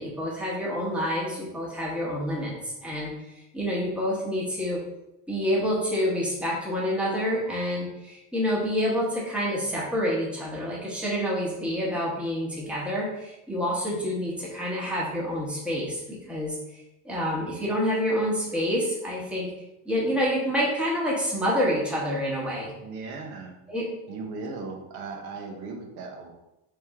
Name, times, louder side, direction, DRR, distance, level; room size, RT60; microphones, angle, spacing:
voice 1, 0.0-2.5 2.8-4.8 5.3-19.5 19.8-22.7 23.7-23.9, equal, 5° right, -5 dB, 1.0 m, -28 dB
voice 2, 22.8-23.6 24.1-26.3, right 3 dB, 75° right, 2 dB, 0.9 m, -37 dB
3.4 x 3.1 x 3.5 m, 0.89 s
cardioid pair, 150°, 38 cm